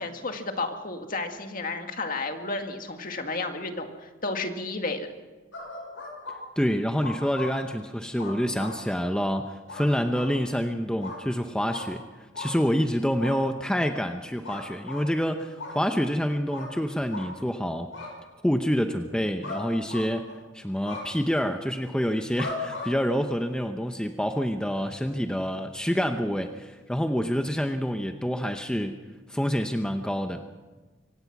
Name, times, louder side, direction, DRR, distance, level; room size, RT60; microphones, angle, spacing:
voice 1, 0.0-5.1, left 3 dB, 45° left, 5 dB, 2.0 m, -32 dB
dog-barking, 5.5-6.4 7.0-7.5 8.2-8.8 9.7-9.9 10.1-10.3 11.0-11.2 11.7-11.9 12.3-12.5 13.2-13.4 14.4-15.0 15.6-15.8 16.5-16.7 17.1-17.3 17.9-18.1 19.4-19.6 19.9-20.4 20.9-21.0 22.4-22.9, left 3 dB, 80° left, 6.9 m, -37 dB
voice 2, 6.6-12.0 12.4-17.9 18.4-20.3 20.5-29.0 29.3-30.4, equal, 5° left, 6 dB, 0.8 m, -27 dB
25.0 x 17.5 x 6.0 m, 1.3 s
head